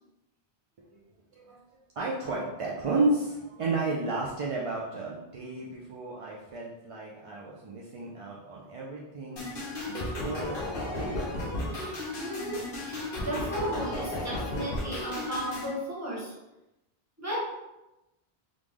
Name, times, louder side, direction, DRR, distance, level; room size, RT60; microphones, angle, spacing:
voice 1, 2.0-9.4 9.9-11.3, right 2 dB, 50° right, -4 dB, 0.4 m, -32 dB
sound 1, 9.4-15.7, left 1 dB, 60° left, 1.0 m, -34 dB
voice 2, 12.2-12.6 12.9-16.3 17.2-17.4, equal, 15° right, -9 dB, 1.4 m, -34 dB
3.1 x 2.5 x 3.5 m, 0.96 s
omnidirectional pair, 1.1 m